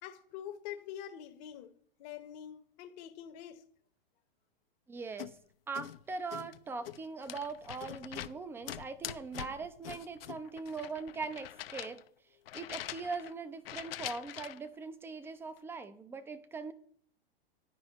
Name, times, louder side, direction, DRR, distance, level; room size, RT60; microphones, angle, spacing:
voice 1, 0.0-1.7 2.0-3.6, left 10 dB, 45° left, 0.9 m, -45 dB
voice 2, 4.9-5.4 5.7-12.0 12.5-16.7, right 4 dB, 10° right, 0.4 m, -41 dB
sound 1, 5.2-5.3 5.7-6.0 6.3-8.4 8.6-12.1 12.5-13.3 13.7-14.7, left 13 dB, 75° left, 0.5 m, -44 dB
10.5 x 4.8 x 4.1 m
hypercardioid pair, 120°, 30 cm